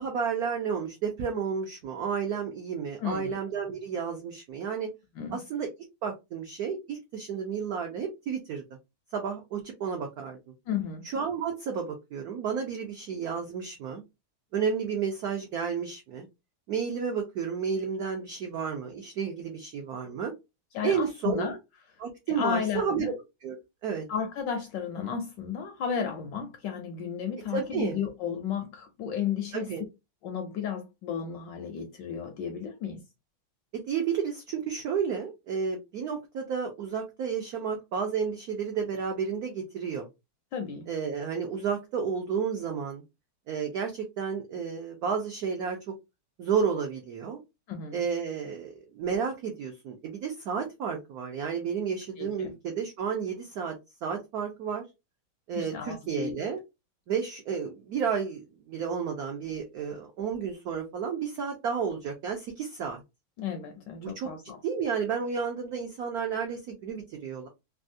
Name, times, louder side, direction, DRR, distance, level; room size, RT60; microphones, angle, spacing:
voice 1, 0.0-4.9 5.3-5.7 6.0-8.6 9.1-10.4 11.0-14.0 14.5-16.3 16.7-20.3 20.8-21.5 22.0-23.1 23.4-23.6 23.8-24.1 27.5-28.0 29.5-29.8 33.9-40.1 40.9-43.0 43.5-45.8 46.4-47.4 47.9-53.7 54.0-54.8 55.5-56.6 57.1-63.0 64.0-64.3 64.6-67.5, right 6 dB, 75° right, 0.8 m, -31 dB
voice 2, 3.0-3.3 5.2-5.4 10.7-11.0 20.7-21.6 22.3-23.2 24.1-29.7 30.2-33.0 40.5-40.9 47.7-48.0 52.2-52.5 55.5-56.4 63.4-64.6, left 7 dB, 75° left, 1.1 m, -33 dB
3.4 x 2.3 x 2.5 m
omnidirectional pair, 2.3 m